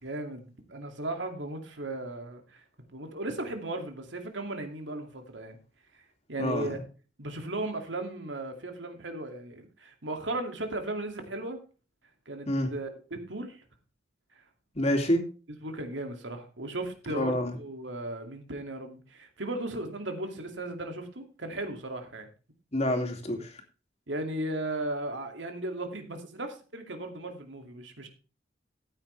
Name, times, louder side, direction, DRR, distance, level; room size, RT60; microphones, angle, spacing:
voice 1, 0.0-2.6 2.9-5.6 5.9-6.0 6.3-6.8 7.2-11.6 12.3-13.6 14.3-14.4 15.6-22.3 24.1-28.1, right 2 dB, 85° right, 2.5 m, -36 dB
voice 2, 6.4-6.8 12.5-12.7 14.7-15.2 17.1-17.5 22.7-23.5, left 1 dB, 35° left, 2.6 m, -27 dB
14.0 x 9.2 x 3.4 m
head